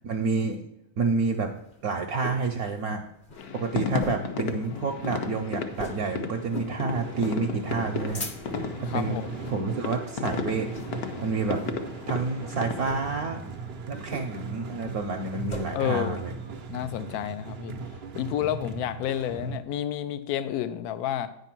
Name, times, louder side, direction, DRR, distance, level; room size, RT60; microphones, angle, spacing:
voice 1, 0.0-0.6 1.0-1.5 1.8-3.0 3.5-8.3 8.8-9.2 9.5-10.7 11.2-11.6 12.1-13.4 13.9-16.3, right 4 dB, 70° right, 5 dB, 0.9 m, -29 dB
sound 1, 1.3-2.5 2.9-3.0 3.2-3.5 3.9-4.4 4.7-4.8 5.0-5.3 5.7-6.1 6.5-6.8 7.2-7.4 7.8-8.7 9.3-9.6 10.0-10.3 10.7-11.1 11.5-11.7 12.7-13.0 14.1-14.5 14.9-15.6, left 2 dB, 40° left, 0.7 m, -39 dB
sound 2, 3.4-12.9, left 5 dB, 60° left, 1.1 m, -34 dB
sound 3, 6.9-19.6, right 4 dB, 85° right, 0.5 m, -39 dB
voice 2, 8.9-9.3 15.7-16.2 16.7-17.7 18.1-21.3, left 11 dB, 80° left, 12 dB, 0.8 m, -30 dB
9.5 x 5.3 x 5.9 m, 0.86 s
omnidirectional pair, 2.2 m